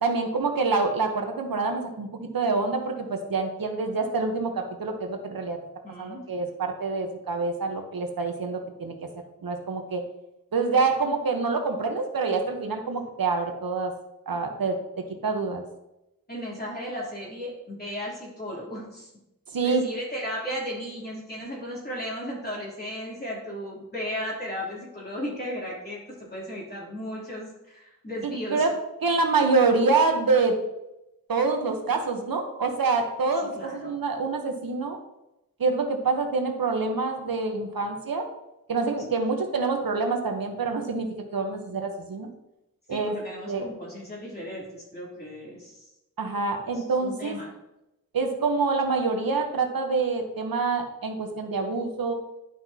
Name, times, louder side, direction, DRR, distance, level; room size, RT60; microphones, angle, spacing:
voice 1, 0.0-5.6 6.0-9.0 9.4-10.0 10.5-13.9 14.3-14.8 15.2-15.6 19.5-19.8 28.2-28.7 29.0-30.6 31.3-35.0 35.6-38.3 38.7-42.3 42.9-43.1 43.5-43.7 46.2-47.4 48.1-52.1, right 4 dB, 85° right, 4 dB, 1.1 m, -26 dB
voice 2, 5.8-6.2 16.3-19.1 19.6-28.7 33.5-34.0 42.9-45.8 46.6-47.5, equal, 30° left, -5 dB, 3.2 m, -35 dB
11.0 x 6.0 x 2.9 m, 0.90 s
wide cardioid pair, 90°, 34 cm